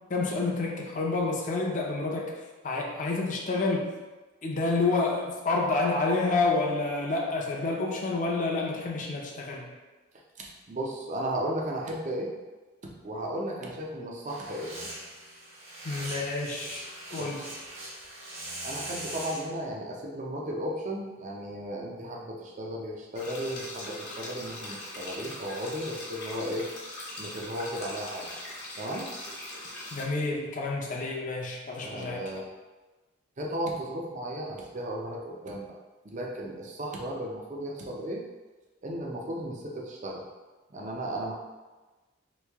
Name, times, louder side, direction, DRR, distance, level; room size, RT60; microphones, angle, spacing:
voice 1, 0.1-2.3 2.6-3.9 4.4-9.7 15.8-16.8 17.1-17.4 29.9-32.2, left 3 dB, 40° left, -2 dB, 0.6 m, -29 dB
voice 2, 10.4-12.3 12.8-14.8 17.1-17.3 18.6-26.7 27.2-28.3 28.8-29.1 31.8-32.4 33.4-35.7 36.0-38.2 38.8-40.2 40.7-41.3, right 1 dB, 35° right, -2 dB, 0.5 m, -35 dB
sound 1, 14.3-19.5, right 1 dB, 60° right, 1.4 m, -41 dB
sound 2, 23.1-30.0, left 1 dB, 55° left, 1.1 m, -41 dB
3.1 x 2.7 x 3.4 m, 1.2 s
head